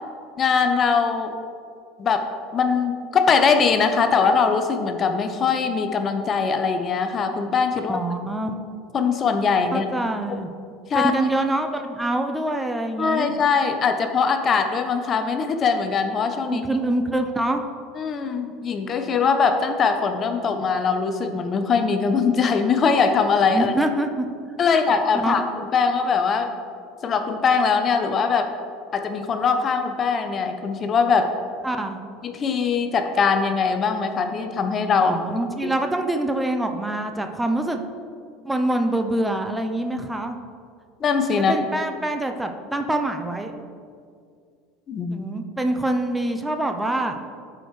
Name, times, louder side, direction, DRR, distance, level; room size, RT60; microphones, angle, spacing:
voice 1, 0.4-1.4 2.0-2.3 2.5-8.0 8.9-9.8 10.9-11.2 13.0-16.6 18.0-23.7 24.6-26.5 27.0-28.5 28.9-31.3 32.2-35.1 35.6-35.7 41.0-41.5 44.9-45.3, left 5 dB, 40° left, 7 dB, 0.7 m, -21 dB
voice 2, 7.9-8.6 9.7-10.5 10.9-13.3 16.5-17.6 23.5-24.3 24.6-25.4 31.6-32.0 35.0-37.8 38.4-40.4 41.3-43.5 45.1-47.2, right 1 dB, 10° right, 5 dB, 0.6 m, -25 dB
12.0 x 5.0 x 3.2 m, 2.3 s
hypercardioid pair, 80°, 0 cm